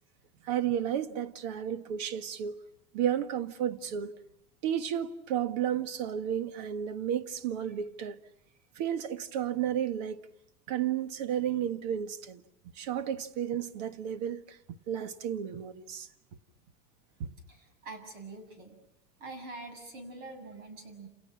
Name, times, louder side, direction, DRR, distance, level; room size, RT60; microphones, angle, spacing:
voice 1, 0.4-2.6 2.9-4.1 4.6-8.2 8.7-10.2 10.7-12.4 12.7-16.1 17.2-17.3, right 9 dB, 85° right, 1.7 m, -32 dB
voice 2, 17.5-18.8 19.2-21.1, right 3 dB, 50° right, 7.0 m, -45 dB
30.0 x 29.0 x 6.0 m
cardioid pair, 160°, 21 cm